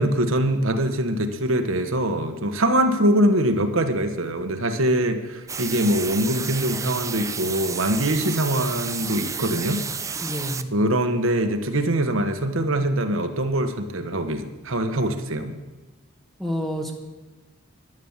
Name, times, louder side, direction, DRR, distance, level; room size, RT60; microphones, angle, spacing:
voice 1, 0.0-9.8 10.7-15.6, right 1 dB, 65° right, 7 dB, 1.3 m, -23 dB
sound 1, 5.5-10.6, right 6 dB, 15° right, 0.4 m, -31 dB
voice 2, 10.2-10.7 16.4-16.9, equal, ahead, 1 dB, 1.3 m, -28 dB
11.5 x 11.0 x 7.3 m, 1.2 s
head